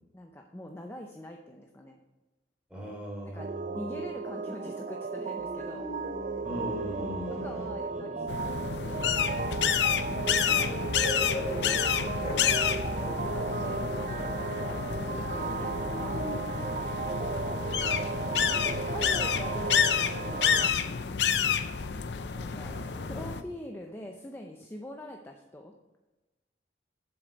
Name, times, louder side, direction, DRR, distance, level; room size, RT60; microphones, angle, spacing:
voice 1, 0.1-2.0 3.2-5.9 7.4-9.1 10.6-11.0 11.5-16.2 17.9-21.1 22.3-22.7 23.0-25.7, left 1 dB, 15° left, 3 dB, 0.6 m, -44 dB
voice 2, 2.7-4.0 6.4-8.3 9.9-10.2 15.9-16.2 22.6-23.2, equal, 5° right, -3 dB, 3.3 m, -41 dB
sound 1, 3.4-20.7, right 4 dB, 45° right, 0.4 m, -35 dB
sound 2, 5.4-7.9 10.0-13.1 15.3-16.5, left 1 dB, 40° left, 1.8 m, -39 dB
sound 3, 8.3-23.4, left 7 dB, 75° left, 0.6 m, -29 dB
7.8 x 7.6 x 5.1 m, 1.1 s
head